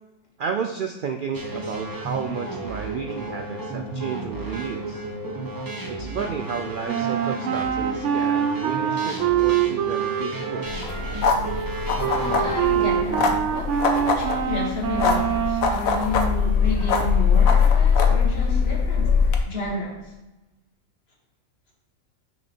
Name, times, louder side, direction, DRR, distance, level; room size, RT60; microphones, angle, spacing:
voice 1, 0.4-5.0 5.9-10.8, right 6 dB, 90° right, 5 dB, 0.4 m, -32 dB
sound 1, 1.3-13.4, right 2 dB, 15° right, 0.9 m, -33 dB
Wind instrument woodwind instrument, 6.9-15.7, right 9 dB, 70° right, 0.9 m, -25 dB
sound 2, 10.7-19.4, left 5 dB, 90° left, 1.3 m, -22 dB
voice 2, 12.0-19.1 19.5-20.0, left 2 dB, 50° left, -1 dB, 1.7 m, -31 dB
6.2 x 5.8 x 4.4 m, 1.0 s
omnidirectional pair, 1.4 m